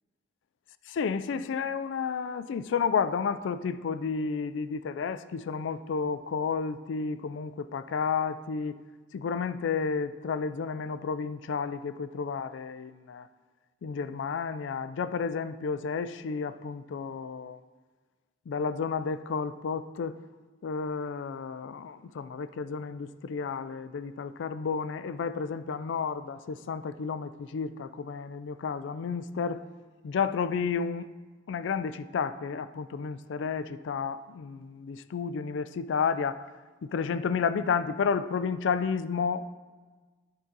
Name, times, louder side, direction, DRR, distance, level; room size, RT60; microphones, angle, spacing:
voice 1, 1.0-8.8 9.1-13.3 13.8-17.6 18.5-20.2 20.6-29.6 30.0-31.1 31.5-36.4 36.8-39.5, left 5 dB, 70° left, 13 dB, 0.3 m, -31 dB
10.0 x 3.9 x 3.9 m, 1.4 s
head